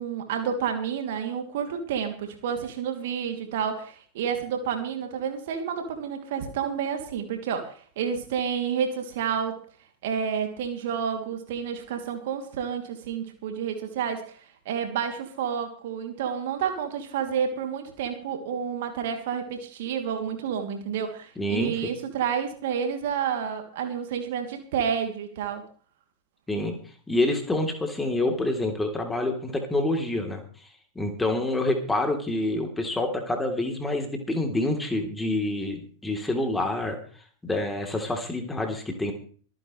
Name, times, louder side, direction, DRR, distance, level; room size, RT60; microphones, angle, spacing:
voice 1, 0.0-9.6 10.0-14.4 14.6-25.6, right 7 dB, 55° right, 5 dB, 3.0 m, -30 dB
voice 2, 21.4-21.7 26.5-26.7 27.1-30.7 31.0-37.0 37.4-39.1, left 2 dB, 10° left, 3 dB, 3.5 m, -27 dB
25.0 x 10.0 x 3.3 m, 0.43 s
figure-of-eight pair, 90°, 0 cm